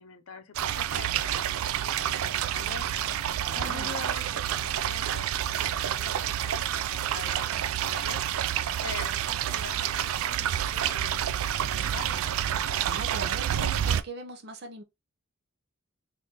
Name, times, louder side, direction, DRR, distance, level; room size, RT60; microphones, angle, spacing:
voice 1, 0.0-3.0 3.5-8.2 8.8-12.2, left 5 dB, 75° left, 0.6 m, -44 dB
sound 1, 0.5-14.0, right 10 dB, 80° right, 0.3 m, -29 dB
voice 2, 3.4-3.9 12.8-14.8, right 2 dB, 55° right, 0.7 m, -40 dB
3.6 x 2.6 x 2.9 m
head